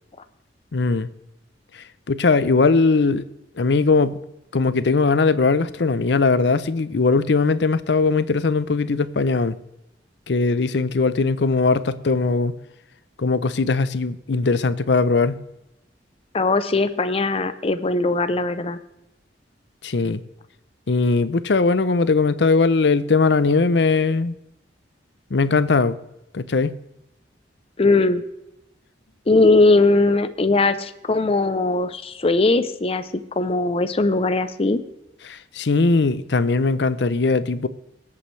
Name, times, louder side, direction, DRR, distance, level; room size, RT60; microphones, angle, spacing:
voice 1, 0.7-1.1 2.1-3.2 3.6-4.2 4.5-9.6 10.3-12.6 13.2-15.4 19.8-20.2 20.9-24.3 25.3-26.0 26.3-26.8 35.2-37.7, left 4 dB, 70° left, 0.6 m, -19 dB
voice 2, 16.3-18.8 27.8-28.2 29.3-33.1 33.4-34.8, left 3 dB, 35° left, 0.6 m, -19 dB
21.0 x 8.5 x 3.3 m
head